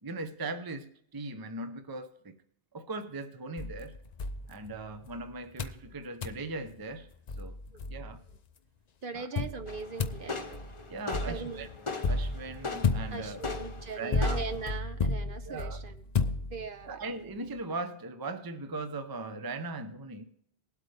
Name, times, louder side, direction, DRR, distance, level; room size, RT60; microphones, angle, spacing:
voice 1, 0.0-2.4 2.7-4.0 4.5-7.1 7.4-7.6 7.9-8.2 9.1-9.4 10.9-11.7 12.1-13.4 14.0-14.4 15.4-15.8 16.9-20.3, right 3 dB, 25° right, 0.7 m, -39 dB
sound 1, 3.6-5.1 5.6-5.9 6.2-6.5 7.0-7.1 7.3-8.4 9.4-16.9, left 4 dB, 45° left, 0.6 m, -33 dB
voice 2, 9.0-10.7 11.2-11.7 13.1-15.9 16.5-17.0, right 4 dB, 55° right, 1.0 m, -40 dB
sound 2, 9.7-14.8, left 4 dB, 30° left, 1.0 m, -40 dB
19.5 x 8.3 x 3.4 m
omnidirectional pair, 1.1 m